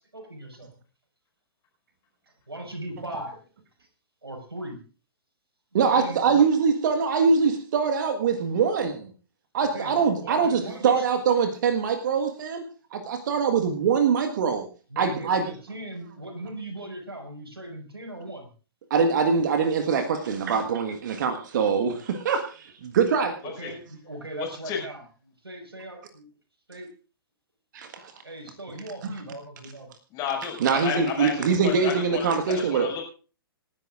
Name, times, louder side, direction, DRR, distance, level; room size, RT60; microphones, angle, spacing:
voice 1, 0.1-0.7 2.5-3.4 3.8-3.9 4.2-4.8 5.7-6.5 9.6-11.0 14.9-18.5 23.4-25.0 25.4-26.3 26.7-26.9 28.2-29.9, right 1 dB, 80° right, 1 dB, 5.5 m, -38 dB
voice 2, 5.7-9.1 9.5-12.6 12.9-14.7 15.0-15.4 18.9-23.3 27.7-28.1 29.0-29.1 30.6-32.9, right 5 dB, 50° right, 6 dB, 1.6 m, -23 dB
voice 3, 24.4-24.8 30.1-32.3 32.5-33.0, left 7 dB, 30° left, 0 dB, 5.5 m, -32 dB
27.0 x 11.0 x 2.5 m, 0.37 s
figure-of-eight pair, 115°, 13 cm